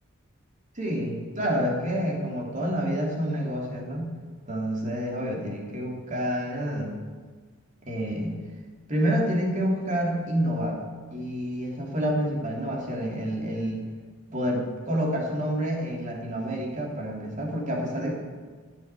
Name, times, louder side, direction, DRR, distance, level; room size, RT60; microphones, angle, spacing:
voice 1, 0.7-4.1 4.5-7.0 7.9-8.4 8.9-10.8 11.1-13.9 14.3-18.1, equal, 35° right, -1 dB, 2.9 m, -28 dB
14.5 x 8.0 x 8.3 m, 1.5 s
head